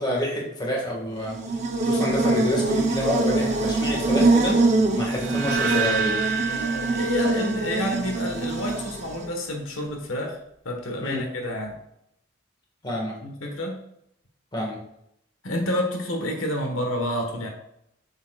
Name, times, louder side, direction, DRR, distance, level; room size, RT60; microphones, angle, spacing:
voice 1, 0.0-1.4 1.8-4.6 4.9-6.2 11.0-11.2 12.8-13.2 14.5-14.8, equal, 20° left, -2 dB, 1.7 m, -28 dB
Buzz, 1.2-9.3, right 2 dB, 35° right, 0.8 m, -24 dB
sound 1, 5.1-8.3, right 5 dB, 65° right, 1.1 m, -29 dB
voice 2, 6.4-10.4 10.6-11.8 13.2-13.8 15.4-17.5, left 1 dB, 90° left, 2 dB, 1.4 m, -29 dB
7.4 x 7.2 x 2.4 m, 0.76 s
head